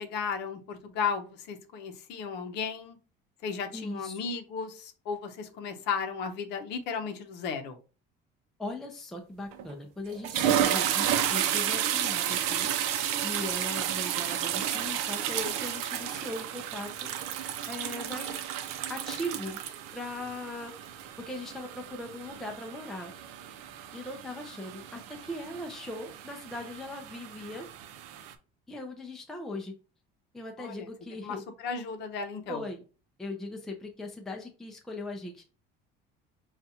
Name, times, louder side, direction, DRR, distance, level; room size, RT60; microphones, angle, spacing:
voice 1, 0.0-3.0 3.4-7.8 30.6-30.9 31.2-32.6, left 6 dB, 55° left, 6 dB, 0.7 m, -35 dB
voice 2, 3.7-4.2 8.6-12.7 13.2-17.1 17.7-18.5 18.9-19.6 19.9-20.9 21.2-23.1 23.9-27.7 28.7-29.7 30.3-31.4 32.5-32.8 33.2-35.4, left 1 dB, ahead, 2 dB, 0.4 m, -39 dB
sound 1, 9.5-9.7 10.1-28.3, right 10 dB, 90° right, 0.6 m, -32 dB
5.5 x 2.4 x 2.7 m, 0.34 s
cardioid pair, 175°, 21 cm